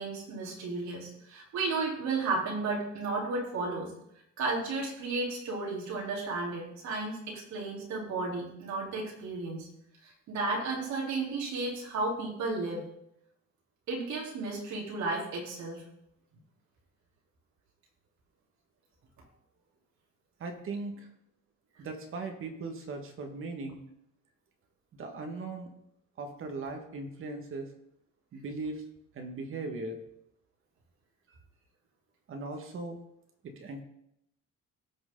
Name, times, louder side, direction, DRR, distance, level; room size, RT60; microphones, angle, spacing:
voice 1, 0.0-3.9 4.4-9.7 10.0-12.9 13.9-15.9, right 3 dB, 65° right, -3 dB, 3.6 m, -33 dB
voice 2, 20.4-21.1 21.8-23.8 24.9-25.7 26.2-27.7 28.3-28.9 29.1-30.0 32.3-33.0 33.4-33.8, right 3 dB, 45° right, 4 dB, 1.6 m, -38 dB
17.0 x 6.4 x 3.8 m, 0.78 s
cardioid pair, 180°, 30 cm